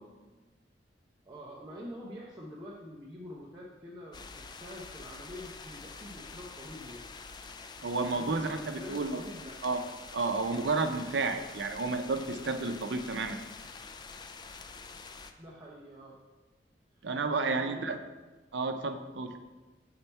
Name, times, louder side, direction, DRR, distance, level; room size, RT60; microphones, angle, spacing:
voice 1, 1.3-7.1 8.1-9.6 15.4-16.2 17.5-18.0, equal, 25° right, -5 dB, 0.7 m, -46 dB
sound 1, 4.1-15.3, left 4 dB, 25° left, 0.3 m, -47 dB
voice 2, 7.8-9.2 9.6-9.8 10.1-13.4 17.0-18.0 18.5-19.3, right 3 dB, 85° right, 7 dB, 0.6 m, -31 dB
5.6 x 4.4 x 4.4 m, 1.2 s
head